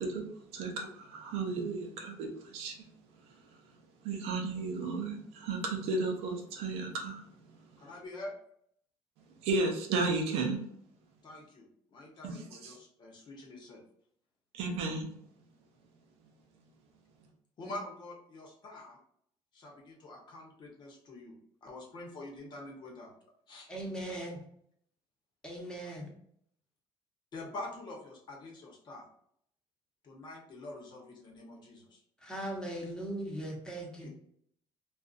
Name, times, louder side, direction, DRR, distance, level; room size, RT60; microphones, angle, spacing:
voice 1, 0.0-2.9 3.2-3.8 4.0-7.9 9.3-10.6 12.2-12.8 14.5-15.1, right 3 dB, 80° right, 0.7 m, -34 dB
voice 2, 7.8-8.3 11.2-13.8 17.6-19.0 19.5-21.3 21.6-23.1 23.5-23.7 27.3-29.1 30.0-32.0 34.0-34.1, left 2 dB, 45° left, 1.0 m, -46 dB
voice 3, 23.7-24.4 25.4-26.1 32.2-34.1, right 1 dB, 5° left, 1.0 m, -39 dB
2.5 x 2.3 x 2.4 m
cardioid pair, 100°, 10 cm